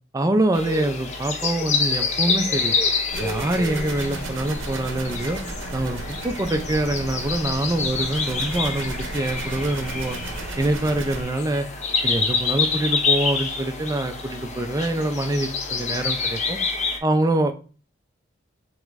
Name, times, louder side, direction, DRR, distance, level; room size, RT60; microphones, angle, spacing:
voice 1, 0.1-2.7 3.2-5.4 5.7-10.2 10.6-11.7 12.0-16.6 17.0-17.5, right 1 dB, 15° right, 6 dB, 0.4 m, -25 dB
sound 1, 0.5-17.0, left 4 dB, 35° left, 0.6 m, -27 dB
sound 2, 3.1-11.2, right 2 dB, 65° right, 0.7 m, -34 dB
3.7 x 3.4 x 3.1 m, 0.36 s
head